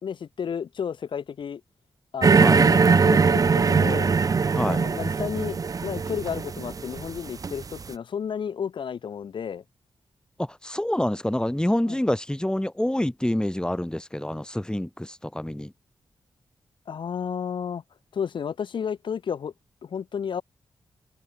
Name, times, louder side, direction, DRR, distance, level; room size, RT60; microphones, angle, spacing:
voice 1, 0.0-1.6 2.1-4.1 4.6-9.6 11.9-12.0 16.9-17.8 18.1-19.5 19.8-20.4, left 7 dB, 65° left, 0.7 m, -32 dB
sound 1, 2.2-7.8, right 5 dB, 40° right, 0.5 m, -21 dB
voice 2, 10.4-15.7, left 1 dB, 10° left, 2.8 m, -27 dB
supercardioid pair, 45°, 9 cm